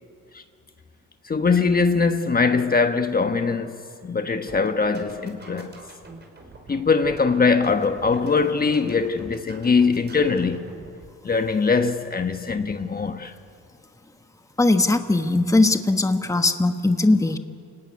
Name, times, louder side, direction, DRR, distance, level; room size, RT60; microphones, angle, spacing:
voice 1, 1.2-3.8 4.0-5.7 6.7-10.7 11.2-13.3, left 4 dB, 30° left, 1.3 m, -22 dB
sound 1, 4.4-11.1, right 2 dB, 35° right, 5.6 m, -45 dB
voice 2, 14.6-17.4, left 2 dB, 10° left, 1.3 m, -19 dB
28.5 x 17.5 x 9.9 m
cardioid pair, 90°, 30 cm